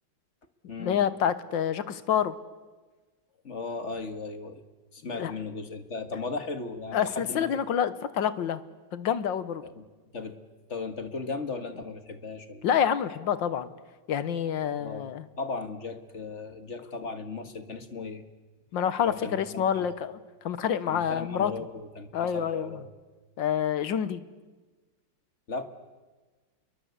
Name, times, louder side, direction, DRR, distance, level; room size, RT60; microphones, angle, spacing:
voice 1, 0.8-2.3 5.1-5.3 6.9-8.6 8.9-9.6 12.6-13.7 14.1-15.3 18.7-20.2 20.4-21.5 22.1-22.8 23.4-24.2, left 8 dB, 85° left, 14 dB, 1.9 m, -27 dB
voice 2, 3.4-4.6 4.9-7.5 9.6-9.8 10.1-10.4 10.7-12.7 14.6-15.1 15.4-18.2 19.0-19.9 20.9-22.9 25.5-25.6, left 4 dB, 40° left, 8 dB, 1.8 m, -36 dB
28.5 x 22.5 x 8.2 m, 1.3 s
omnidirectional pair, 2.0 m